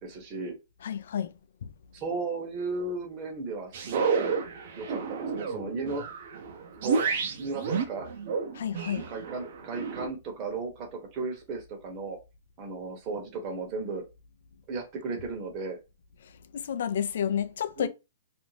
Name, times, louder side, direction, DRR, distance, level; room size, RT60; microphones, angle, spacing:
voice 1, 0.0-0.6 1.9-4.4 4.8-6.0 6.8-7.0 7.3-8.1 9.1-12.2 12.6-14.0 14.7-15.8 17.8-17.9, right 3 dB, 30° right, 0.9 m, -35 dB
voice 2, 0.8-1.3 1.6-1.7 8.5-9.1 16.5-17.9, left 8 dB, 70° left, 0.3 m, -30 dB
sound 1, 3.7-10.1, right 5 dB, 60° right, 0.6 m, -31 dB
2.5 x 2.0 x 3.2 m
hypercardioid pair, 145°, 0 cm